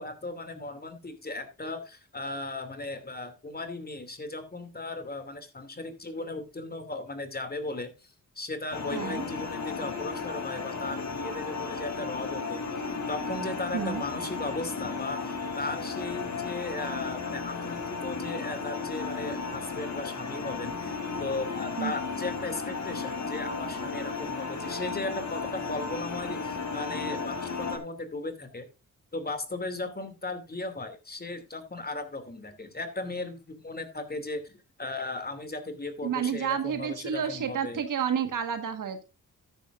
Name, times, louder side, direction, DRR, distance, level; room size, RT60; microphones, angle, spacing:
voice 1, 0.0-12.6 13.1-28.7 29.1-34.5 34.8-37.8, left 2 dB, 30° left, 9 dB, 2.6 m, -36 dB
sound 1, 8.7-27.8, left 4 dB, 55° left, 3.2 m, -34 dB
voice 2, 8.9-9.2 13.7-14.0 21.8-21.9 36.0-39.0, right 8 dB, 70° right, 7 dB, 1.6 m, -30 dB
13.0 x 10.5 x 2.5 m, 0.27 s
cardioid pair, 70°, 33 cm